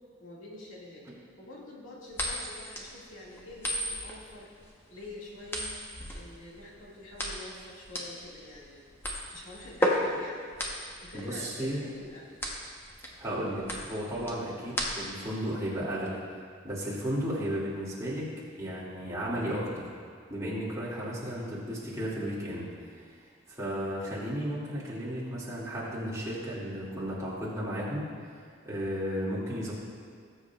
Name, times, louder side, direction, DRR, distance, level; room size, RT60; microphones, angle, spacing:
voice 1, 0.2-1.1 1.4-4.5 4.9-5.7 6.1-8.8 9.3-10.6 11.0-12.4, left 1 dB, 85° left, -5 dB, 2.1 m, -46 dB
sound 1, 2.1-15.3, equal, 10° left, 0.9 m, -34 dB
voice 2, 11.1-11.8 13.2-16.2 16.6-18.3 18.5-19.9 20.3-23.1 23.5-28.0 28.6-29.7, equal, 15° right, -8 dB, 2.3 m, -34 dB
19.0 x 7.5 x 2.4 m, 2.1 s
head